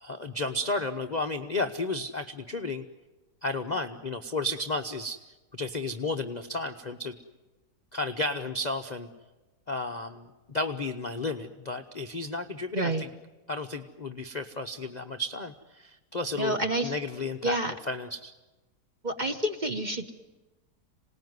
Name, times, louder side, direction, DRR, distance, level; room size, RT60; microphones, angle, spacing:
voice 1, 0.0-2.8 3.4-5.2 5.5-7.1 7.9-9.1 9.7-12.9 13.5-17.6 17.9-18.3, left 2 dB, 35° left, 5 dB, 0.7 m, -33 dB
voice 2, 12.7-13.1 16.3-17.0 17.4-17.7 19.0-20.1, right 1 dB, 30° right, 6 dB, 1.1 m, -29 dB
27.0 x 19.0 x 9.5 m, 1.1 s
omnidirectional pair, 1.9 m